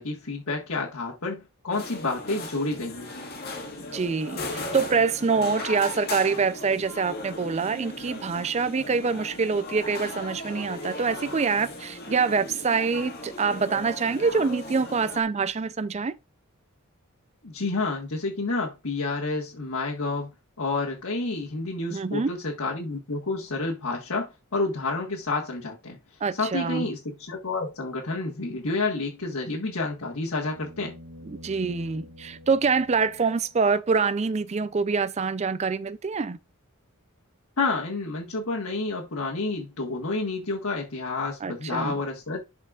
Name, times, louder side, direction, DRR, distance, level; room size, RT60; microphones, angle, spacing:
voice 1, 0.0-3.1 17.4-26.0 26.3-30.9 37.6-42.4, left 3 dB, 70° left, 1.5 m, -29 dB
sound 1, 1.7-15.2, left 2 dB, 45° left, 1.9 m, -37 dB
voice 2, 3.9-16.1 21.9-22.3 26.2-26.9 31.2-36.4 41.4-42.0, right 5 dB, 30° right, 0.4 m, -25 dB
sound 2, 29.7-33.7 36.1-36.2, left 1 dB, 70° right, 1.1 m, -48 dB
12.0 x 4.4 x 2.4 m
head